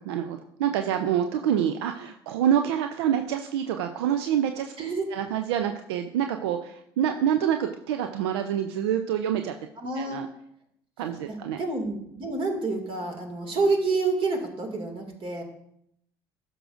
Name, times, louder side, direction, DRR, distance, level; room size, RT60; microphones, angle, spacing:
voice 1, 0.0-4.7 5.1-9.5 10.0-10.3 11.0-11.6, right 9 dB, 75° right, 7 dB, 0.5 m, -26 dB
voice 2, 0.8-1.2 4.8-5.0 9.8-10.2 11.3-15.4, right 3 dB, 40° right, 3 dB, 2.2 m, -28 dB
12.5 x 6.2 x 2.5 m, 0.74 s
hypercardioid pair, 70°, 13 cm